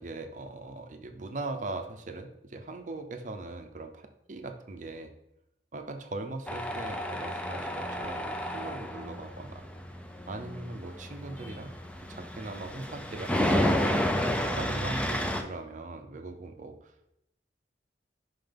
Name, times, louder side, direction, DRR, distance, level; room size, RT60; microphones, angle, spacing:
voice 1, 0.0-5.1 5.7-9.6 10.3-11.7 12.1-14.0 14.4-16.9, right 2 dB, 45° right, 6 dB, 0.6 m, -40 dB
Tools, 6.5-15.4, equal, 5° left, 0.5 m, -31 dB
5.6 x 3.8 x 5.2 m, 0.84 s
head